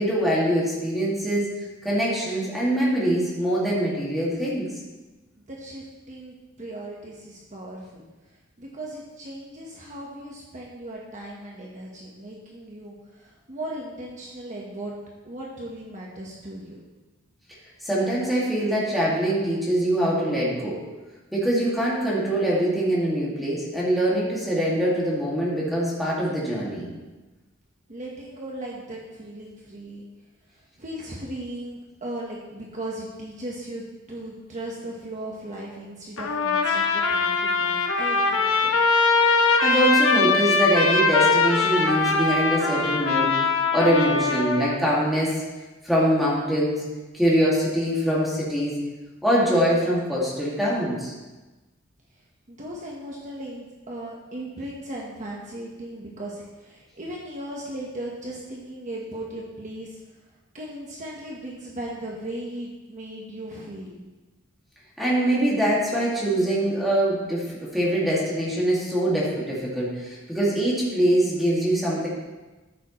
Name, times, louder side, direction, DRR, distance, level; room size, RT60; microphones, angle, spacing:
voice 1, 0.0-1.5 1.8-4.7 17.8-20.8 21.3-26.9 39.2-45.4 45.8-46.8 47.1-48.8 49.2-51.1 65.0-72.1, right 1 dB, ahead, -7 dB, 2.2 m, -23 dB
voice 2, 5.5-8.0 8.6-14.9 15.2-16.8 27.9-30.0 30.5-38.7 52.5-60.0 60.5-64.1, right 1 dB, 35° right, -3 dB, 1.2 m, -37 dB
Trumpet, 36.2-44.8, left 4 dB, 75° left, 1.1 m, -21 dB
12.5 x 7.1 x 3.2 m, 1.2 s
head